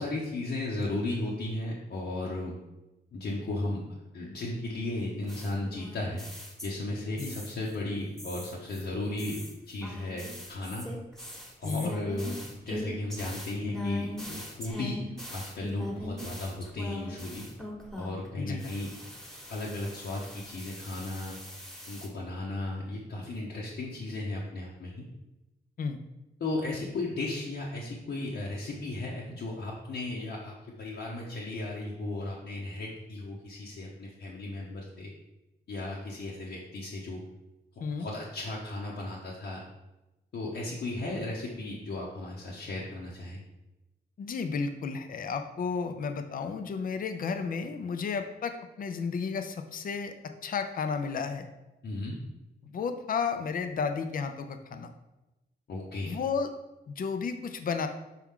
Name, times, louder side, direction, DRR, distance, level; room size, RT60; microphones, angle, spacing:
voice 1, 0.0-2.6 3.1-3.8 4.1-6.2 6.6-10.9 11.6-17.5 18.0-18.9 19.5-21.4 21.9-25.0 26.4-35.1 35.7-37.2 38.0-39.6 40.3-43.4 51.8-52.2 55.7-56.2, left 2 dB, 80° left, -5 dB, 1.0 m, -35 dB
sound 1, 5.3-6.9 7.2-7.8 8.2-18.3 18.6-22.1, left 1 dB, 5° left, 1.1 m, -41 dB
voice 2, 44.2-50.1 50.4-51.5 52.6-54.9 56.1-56.5 56.9-57.9, left 5 dB, 55° left, 7 dB, 0.5 m, -32 dB
6.0 x 4.5 x 3.7 m, 0.99 s
wide cardioid pair, 145°, 18 cm